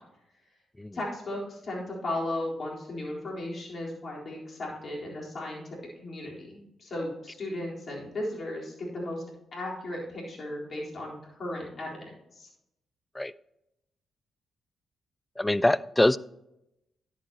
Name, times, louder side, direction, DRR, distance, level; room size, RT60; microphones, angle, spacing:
voice 1, 0.9-5.6 6.0-9.2 9.5-11.9 12.3-12.5, left 1 dB, 55° left, -3 dB, 3.9 m, -35 dB
voice 2, 15.4-16.2, left 1 dB, 15° left, 19 dB, 0.4 m, -24 dB
11.0 x 9.1 x 2.9 m, 0.83 s
hypercardioid pair, 40°, 0 cm